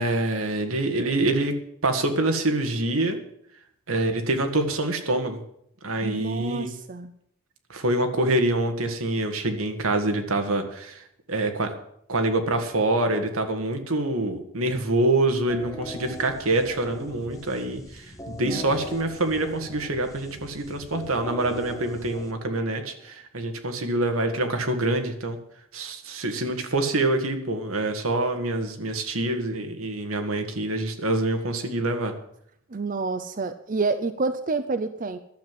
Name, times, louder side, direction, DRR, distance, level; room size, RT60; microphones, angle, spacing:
voice 1, 0.0-1.5 1.8-3.2 3.9-5.4 5.8-6.7 7.7-11.0 11.3-11.7 12.1-25.4 25.7-32.1, right 2 dB, 85° right, 6 dB, 1.9 m, -26 dB
voice 2, 6.0-7.1 18.4-18.7 32.7-35.2, right 3 dB, 40° right, 10 dB, 0.6 m, -28 dB
sound 1, 15.5-23.1, left 1 dB, 15° left, 1.0 m, -41 dB
11.5 x 7.7 x 9.3 m, 0.73 s
head